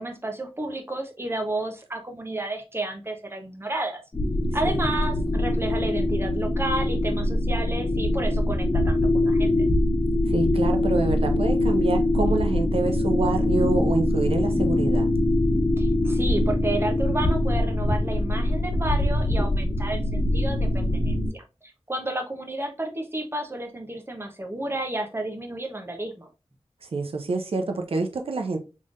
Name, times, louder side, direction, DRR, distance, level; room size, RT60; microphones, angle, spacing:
voice 1, 0.0-4.0 4.5-9.5 15.8-21.4 21.9-26.3, right 2 dB, 25° right, 0.9 m, -31 dB
sound 1, 4.1-21.3, left 1 dB, 35° left, 1.2 m, -23 dB
voice 2, 10.3-15.1 26.8-28.6, right 3 dB, 65° right, 0.6 m, -27 dB
3.7 x 3.3 x 2.5 m
wide cardioid pair, 75°, 10 cm